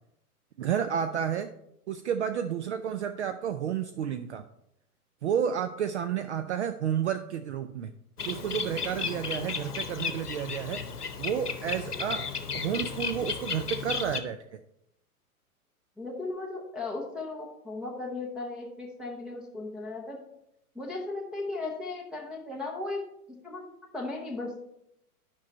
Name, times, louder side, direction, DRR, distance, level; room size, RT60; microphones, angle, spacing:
voice 1, 0.6-1.5 1.9-4.4 5.2-7.9 8.2-10.9 11.2-14.6, right 8 dB, 50° right, 9 dB, 0.5 m, -31 dB
Bird, 8.2-14.2, left 6 dB, 85° left, 0.9 m, -34 dB
voice 2, 16.0-20.2 20.7-23.0 23.3-24.6, left 3 dB, ahead, -4 dB, 0.6 m, -36 dB
9.7 x 5.4 x 4.2 m, 0.79 s
figure-of-eight pair, 105°, 45 cm